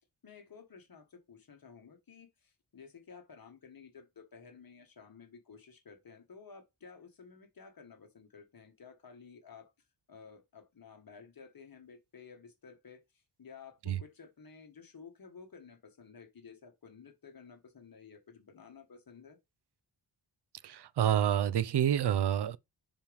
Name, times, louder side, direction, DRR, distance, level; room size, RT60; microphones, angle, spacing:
voice 1, 0.2-9.7 10.1-19.4, left 5 dB, 50° left, 1.7 m, -54 dB
voice 2, 20.6-22.6, right 9 dB, 60° right, 0.6 m, -28 dB
7.1 x 5.2 x 3.5 m
wide cardioid pair, 145°, 45 cm